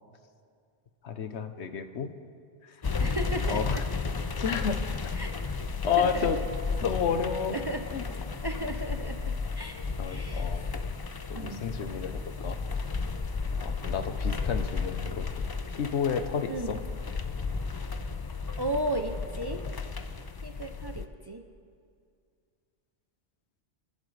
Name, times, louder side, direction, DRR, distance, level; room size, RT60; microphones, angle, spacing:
voice 1, 1.0-2.1 2.6-2.7 3.5-3.8 4.4-4.8 5.8-6.4 6.8-7.6 7.9-8.1 10.0-10.7 11.3-12.6 13.6-16.8, left 7 dB, 75° left, 8 dB, 1.1 m, -31 dB
sound 1, 2.8-21.1, left 4 dB, 40° left, 0.3 m, -33 dB
voice 2, 3.0-3.8 5.2-5.4 6.0-6.3 7.5-7.8 8.4-9.8 10.1-10.6 11.3-11.6 16.5-16.8 18.6-19.6 20.4-21.4, right 1 dB, 30° right, 5 dB, 0.5 m, -34 dB
28.5 x 11.0 x 3.3 m, 2.3 s
omnidirectional pair, 1.2 m